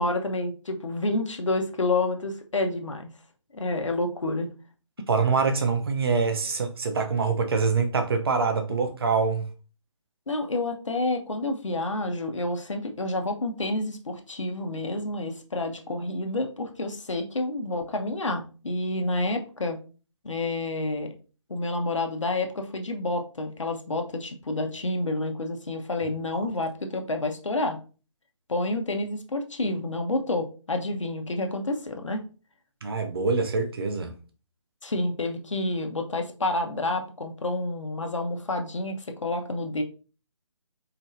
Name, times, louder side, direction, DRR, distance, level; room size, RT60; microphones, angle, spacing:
voice 1, 0.0-3.1 3.5-4.5 10.3-19.8 20.2-21.1 21.5-27.8 28.5-32.2 34.8-39.8, left 2 dB, 70° left, 1.1 m, -29 dB
voice 2, 5.1-9.4 26.3-26.5 32.8-34.1, right 4 dB, 50° right, 0.9 m, -25 dB
4.6 x 4.2 x 2.7 m
figure-of-eight pair, 145°, 17 cm